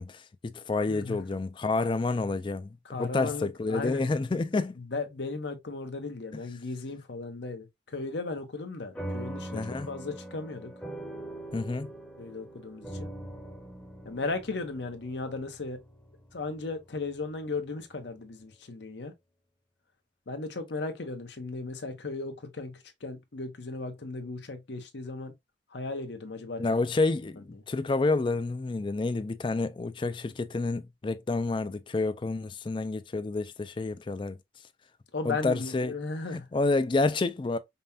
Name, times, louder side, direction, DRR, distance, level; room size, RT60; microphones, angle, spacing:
voice 1, 0.0-4.8 9.5-9.9 11.5-11.9 26.6-34.4 35.2-36.0 36.3-37.6, left 3 dB, 25° left, 0.3 m, -29 dB
voice 2, 0.9-1.2 2.8-4.0 4.8-10.7 12.2-13.1 14.0-15.8 16.3-19.1 20.3-25.3 25.7-26.8 27.5-27.6 35.1-36.5, left 3 dB, 65° left, 0.8 m, -36 dB
sound 1, 9.0-17.7, right 1 dB, 5° left, 0.7 m, -42 dB
5.3 x 2.2 x 2.6 m
head